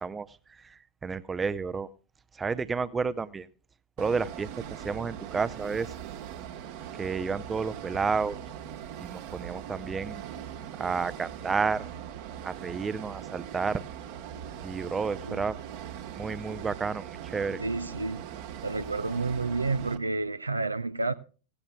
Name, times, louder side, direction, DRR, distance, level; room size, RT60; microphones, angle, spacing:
voice 1, 0.0-1.9 2.3-3.5 4.0-5.9 7.0-8.4 9.0-10.2 10.8-11.8 12.4-13.8 14.6-15.5 16.2-17.6, right 5 dB, 15° right, 0.5 m, -31 dB
sound 1, 4.0-20.0, right 9 dB, 50° right, 1.2 m, -41 dB
voice 2, 17.6-18.3 18.6-21.1, right 3 dB, 80° right, 0.5 m, -30 dB
16.5 x 16.5 x 2.3 m
figure-of-eight pair, 90°, 0 cm